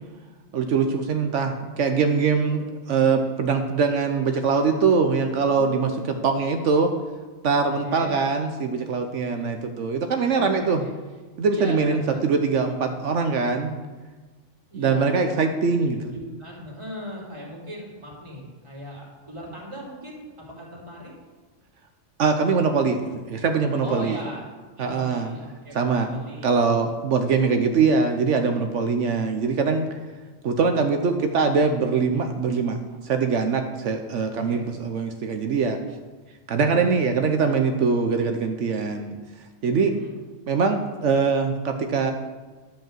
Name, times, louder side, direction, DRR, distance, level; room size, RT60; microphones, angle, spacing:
voice 1, 0.5-5.9 6.2-6.9 7.4-10.8 11.4-13.7 14.7-16.1 22.2-24.2 24.8-25.3 25.7-26.1 26.4-29.9 30.4-32.8 33.0-35.8 36.5-39.2 39.6-39.9 40.5-42.1, right 5 dB, 70° right, 5 dB, 1.1 m, -22 dB
voice 2, 5.4-6.2 7.8-8.2 10.2-10.9 11.5-12.2 14.7-15.3 15.7-20.3 20.6-21.1 23.8-24.4 24.8-26.7 34.5-34.7 39.6-40.2, equal, 25° right, -4 dB, 3.1 m, -38 dB
12.0 x 5.4 x 7.4 m, 1.3 s
omnidirectional pair, 1.3 m